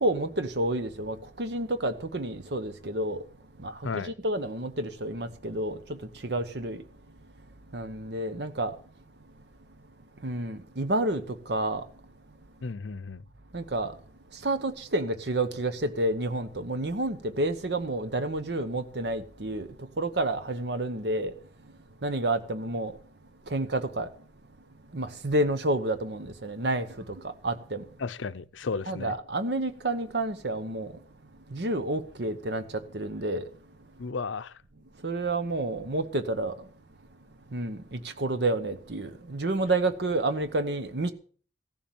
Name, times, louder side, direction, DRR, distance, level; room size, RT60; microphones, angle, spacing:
voice 1, 0.0-3.2 3.6-5.8 6.2-6.8 7.7-8.7 10.2-11.2 11.5-11.8 13.5-13.9 14.4-19.7 20.0-21.3 22.0-22.9 23.5-24.1 24.9-26.9 27.4-27.8 28.9-30.9 31.5-32.6 32.9-33.4 35.0-36.5 37.5-41.1, right 2 dB, 60° right, 0.9 m, -29 dB
voice 2, 3.8-4.1 12.6-13.2 28.0-29.2 34.0-34.6, left 4 dB, 85° left, 0.6 m, -34 dB
15.5 x 7.4 x 7.0 m
head